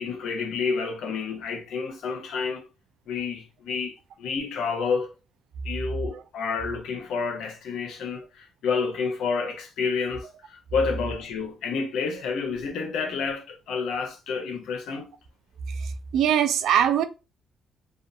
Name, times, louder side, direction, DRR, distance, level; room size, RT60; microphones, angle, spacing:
voice 1, 0.0-2.6 3.1-5.1 5.6-15.1, left 5 dB, 80° left, 0.7 m, -29 dB
voice 2, 15.7-17.0, right 9 dB, 80° right, 0.3 m, -23 dB
2.5 x 2.3 x 2.6 m
cardioid pair, 90°, 0 cm